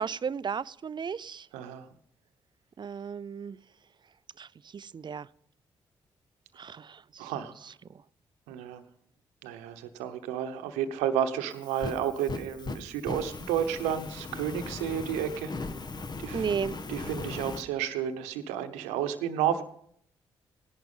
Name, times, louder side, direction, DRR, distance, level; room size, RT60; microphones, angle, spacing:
voice 1, 0.0-1.5 2.8-3.6 4.4-5.3 6.6-7.3 7.6-7.7 16.3-16.8, right 6 dB, 45° right, 20 dB, 0.5 m, -34 dB
voice 2, 1.5-1.9 7.2-7.5 8.5-8.8 9.4-15.5 16.2-16.5 16.9-19.6, right 9 dB, 90° right, 9 dB, 1.0 m, -31 dB
Fire, 11.5-17.6, left 3 dB, 40° left, 1.3 m, -38 dB
17.0 x 11.0 x 5.5 m, 0.67 s
hypercardioid pair, 45°, 11 cm